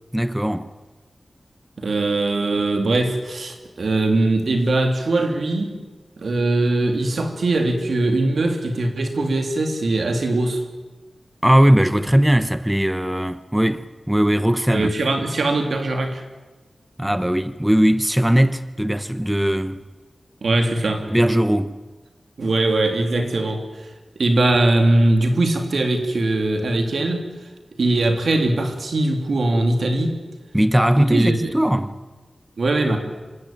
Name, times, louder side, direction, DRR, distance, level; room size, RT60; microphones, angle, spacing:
voice 1, 0.1-0.7 11.4-14.9 17.0-19.8 21.1-21.8 30.5-32.0, equal, 10° right, 0.9 m, -19 dB
voice 2, 1.8-5.8 6.2-10.6 14.7-16.2 20.4-21.1 22.4-23.9 24.2-27.3 27.8-30.2 31.0-31.5 32.6-33.0, right 2 dB, 85° right, 3.0 m, -21 dB
26.5 x 16.0 x 9.1 m
wide cardioid pair, 65°, 0 cm